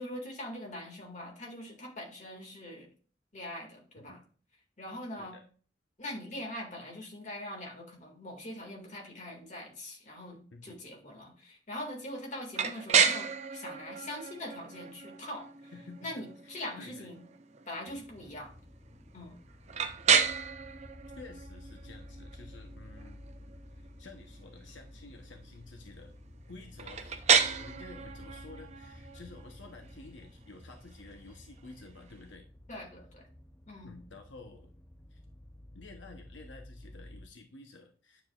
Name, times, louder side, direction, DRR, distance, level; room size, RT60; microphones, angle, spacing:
voice 1, 0.0-2.9 3.3-4.2 4.8-5.4 6.0-10.4 10.6-15.7 16.0-17.3 17.7-18.5 19.1-19.4 32.7-33.3 33.7-34.0, left 1 dB, 40° left, 1 dB, 2.0 m, -42 dB
voice 2, 10.5-10.8 15.7-17.1 21.2-23.2 23.7-26.1 26.5-32.5 33.8-34.7 35.1-35.2 35.7-38.2, left 3 dB, 85° left, 3 dB, 0.9 m, -51 dB
sound 1, 12.5-32.3, right 6 dB, 35° right, 0.6 m, -33 dB
sound 2, 17.9-37.3, left 1 dB, 10° left, 0.5 m, -52 dB
9.7 x 7.2 x 2.4 m, 0.42 s
head